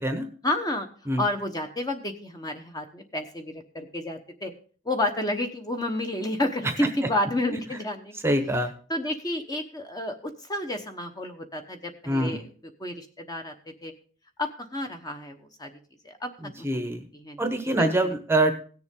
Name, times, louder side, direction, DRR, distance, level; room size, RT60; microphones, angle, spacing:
voice 1, 0.4-0.9 1.2-4.5 4.8-8.1 8.9-12.5 12.8-13.5 13.8-13.9 14.4-15.7 16.0-16.3 16.6-16.9 17.1-17.4 17.8-18.1, left 1 dB, 20° left, 5 dB, 1.0 m, -30 dB
voice 2, 8.2-8.7 12.1-12.4 16.4-17.1 17.4-18.5, right 1 dB, 10° right, 7 dB, 0.9 m, -25 dB
17.0 x 7.0 x 3.7 m, 0.43 s
head